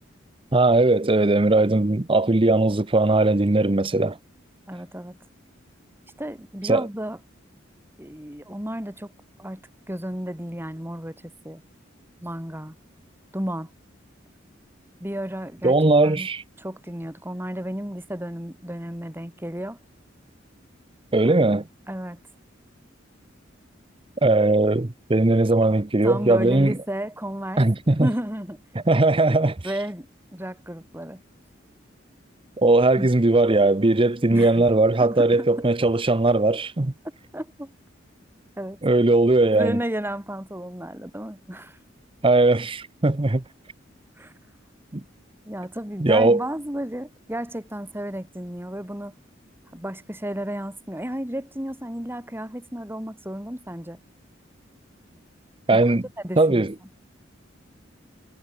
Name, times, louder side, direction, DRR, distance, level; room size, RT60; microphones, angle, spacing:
voice 1, 0.5-4.2 6.6-6.9 15.6-16.4 21.1-21.6 24.2-26.7 27.6-28.1 28.9-29.6 32.6-36.9 38.8-39.8 42.2-43.4 44.9-45.0 46.0-46.4 55.7-56.0 56.4-56.7, right 2 dB, 25° right, 0.8 m, -19 dB
voice 2, 4.7-5.2 6.2-7.2 8.0-9.1 9.4-11.6 12.2-12.8 13.3-13.7 15.0-15.7 16.0-16.3 16.6-19.8 21.2-21.4 21.9-22.2 26.0-27.6 28.0-28.6 29.6-31.2 33.0-33.1 34.3-34.7 35.0-35.7 37.3-37.7 38.6-38.8 39.5-41.8 44.2-44.3 45.4-49.1 49.7-54.0 55.7-55.8 56.2-56.7, equal, 10° right, 4.8 m, -33 dB
head